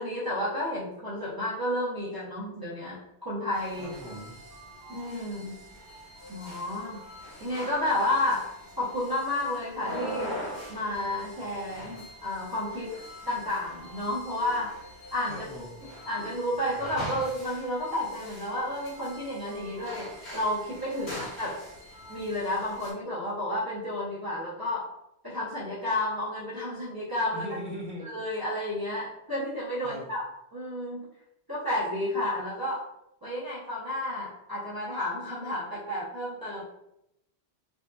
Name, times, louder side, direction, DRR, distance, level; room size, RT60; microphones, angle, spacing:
voice 1, 0.0-3.9 4.9-5.6 6.3-7.0 7.4-8.5 8.8-10.3 10.7-12.9 13.3-14.8 15.1-15.4 15.8-21.6 22.1-24.9 25.2-27.5 28.0-30.2 30.5-31.0 31.5-32.8 33.2-36.6, left 1 dB, 25° right, -10 dB, 0.5 m, -31 dB
sound 1, 3.5-22.9, equal, 90° left, 1.2 m, -43 dB
voice 2, 3.8-4.4 15.3-15.8 21.1-21.3 27.3-28.1 29.8-30.1, equal, 30° left, -9 dB, 0.5 m, -40 dB
2.6 x 2.3 x 2.2 m, 0.84 s
omnidirectional pair, 1.1 m